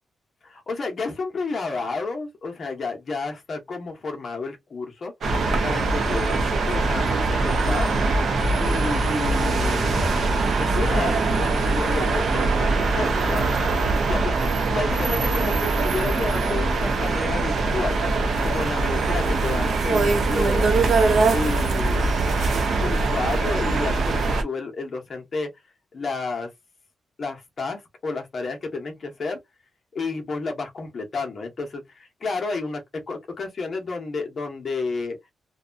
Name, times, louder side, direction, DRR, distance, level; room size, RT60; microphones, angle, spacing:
voice 1, 0.4-5.1 5.6-6.4 6.7-7.9 8.6-13.6 14.0-14.3 14.7-18.0 18.4-20.7 21.3-22.2 22.8-25.5 25.9-26.5 27.2-29.4 29.9-35.2, left 3 dB, 40° left, 0.8 m, -31 dB
sound 1, 5.2-24.4, right 3 dB, 60° right, 0.6 m, -22 dB
2.7 x 2.2 x 2.5 m
wide cardioid pair, 170°, 0 cm